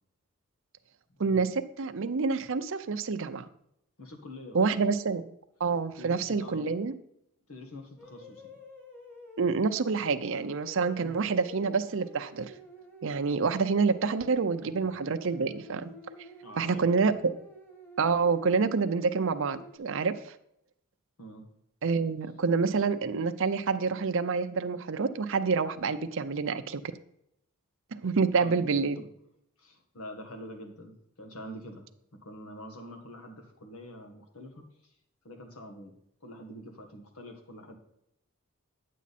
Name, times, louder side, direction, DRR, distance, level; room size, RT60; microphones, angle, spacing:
voice 1, 1.2-3.4 4.5-5.2 5.6-6.9 9.4-12.5 13.0-15.9 16.6-17.1 18.0-20.4 21.8-26.8 27.9-29.0, right 4 dB, 60° right, 9 dB, 0.6 m, -27 dB
voice 2, 4.0-4.6 6.0-6.7 7.5-8.5 10.9-11.2 14.6-14.8 16.4-17.1 21.2-21.5 28.4-28.7 29.0-29.1 29.6-31.9 32.1-34.9 35.2-35.9 36.2-37.8, equal, 80° left, 4 dB, 1.7 m, -45 dB
sound 1, 8.0-19.8, left 1 dB, 10° left, 1.6 m, -50 dB
10.0 x 7.4 x 4.2 m, 0.77 s
head